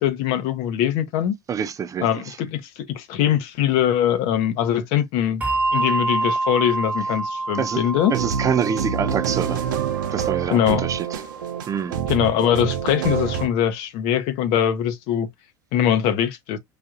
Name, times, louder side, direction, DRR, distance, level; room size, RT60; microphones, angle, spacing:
voice 1, 0.0-1.4 2.0-5.4 5.7-8.1 10.5-10.9 12.1-15.3 15.7-16.6, left 10 dB, 65° left, 0.9 m, -22 dB
voice 2, 1.5-2.4 7.6-7.8 8.1-9.7 10.1-11.2 11.7-12.0, right 7 dB, 30° right, 0.5 m, -26 dB
Bell, 5.4-12.3, right 2 dB, 15° right, 1.1 m, -28 dB
sound 1, 8.0-13.5, right 8 dB, 80° right, 0.6 m, -27 dB
4.9 x 2.7 x 2.4 m
hypercardioid pair, 80°, 11 cm